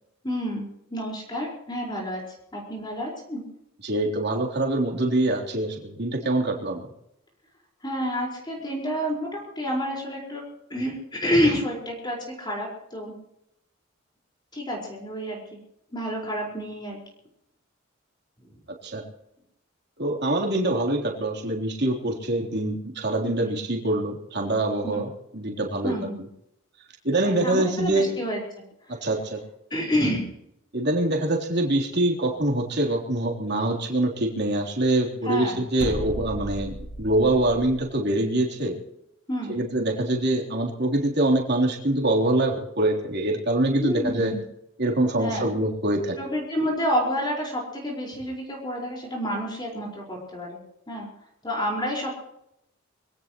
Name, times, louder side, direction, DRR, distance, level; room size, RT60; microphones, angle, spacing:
voice 1, 0.2-2.2 2.5-3.4 7.8-10.4 10.7-13.1 14.5-15.4 15.9-17.0 24.8-25.0 25.8-26.2 27.2-28.4 29.7-30.3 35.2-35.6 39.3-39.5 43.8-44.4 45.2-45.5 46.2-50.6 50.9-51.1 51.4-52.2, equal, 20° left, -2 dB, 4.8 m, -29 dB
voice 2, 3.8-6.8 18.8-19.0 20.0-25.1 25.3-25.9 27.0-28.1 29.0-29.4 30.7-38.7 39.5-44.3 44.8-46.2, right 1 dB, 55° right, 0 dB, 3.5 m, -24 dB
sound 1, 35.8-37.8, equal, 55° left, 2.8 m, -35 dB
24.0 x 17.5 x 3.1 m, 0.80 s
head